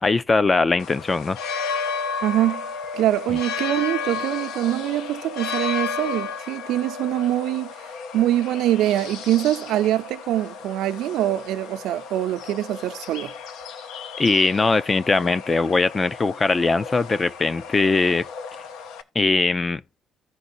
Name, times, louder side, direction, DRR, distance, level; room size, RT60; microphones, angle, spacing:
voice 1, 0.0-1.4 14.2-18.3 19.2-19.8, left 3 dB, 20° left, 0.4 m, -21 dB
sound 1, 0.8-19.0, left 5 dB, 85° left, 0.7 m, -33 dB
voice 2, 2.2-2.7 2.9-7.7 8.1-13.3, right 13 dB, 80° right, 0.6 m, -24 dB
15.5 x 5.2 x 2.6 m
cardioid pair, 140°, 0 cm